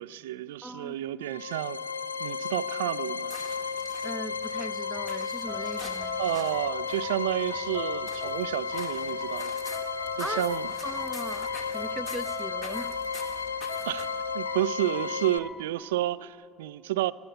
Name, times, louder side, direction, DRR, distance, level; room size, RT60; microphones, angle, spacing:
voice 1, 0.0-1.8 2.2-3.4 6.2-9.6 10.2-10.7 13.9-14.1 14.3-17.1, right 15 dB, 70° right, 0.3 m, -30 dB
voice 2, 0.6-1.0 4.0-6.3 10.2-10.4 10.8-13.0, right 1 dB, ahead, 0.6 m, -39 dB
sound 1, 1.2-15.4, left 5 dB, 85° left, 0.3 m, -33 dB
sound 2, 3.2-14.3, left 3 dB, 45° left, 2.0 m, -48 dB
sound 3, 4.8-15.6, left 1 dB, 20° left, 1.7 m, -43 dB
18.5 x 10.5 x 6.8 m
figure-of-eight pair, 65°, 0 cm